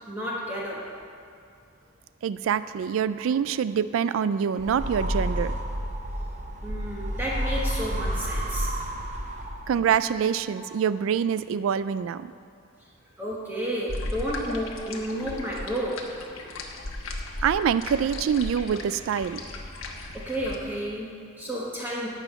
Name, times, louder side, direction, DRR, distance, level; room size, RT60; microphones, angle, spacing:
voice 1, 0.1-0.9 6.6-8.7 10.6-10.7 13.2-16.6 19.7-19.8 20.1-22.1, equal, 10° right, -5 dB, 1.1 m, -32 dB
voice 2, 2.2-5.6 9.7-12.3 17.4-19.4, right 7 dB, 75° right, 14 dB, 0.3 m, -25 dB
sound 1, 4.6-9.9, equal, 35° right, 0.9 m, -30 dB
sound 2, 13.9-20.6, left 2 dB, 85° left, 1.2 m, -36 dB
12.0 x 5.7 x 8.1 m, 2.4 s
head